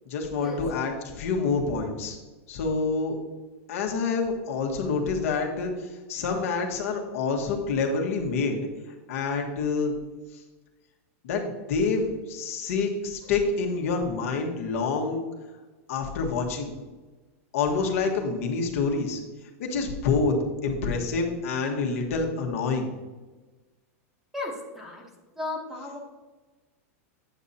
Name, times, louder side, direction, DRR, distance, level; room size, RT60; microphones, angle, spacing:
voice 1, 0.1-2.2 2.5-3.2 3.7-5.7 6.1-8.7 9.1-9.9 11.2-15.2 15.9-16.7 17.5-19.2 19.6-20.3 20.6-22.9, left 4 dB, 65° left, 1 dB, 1.4 m, -27 dB
voice 2, 24.3-25.0 25.4-26.0, left 2 dB, 5° right, -2 dB, 1.0 m, -35 dB
8.8 x 6.6 x 2.8 m, 1.2 s
supercardioid pair, 165°, 8 cm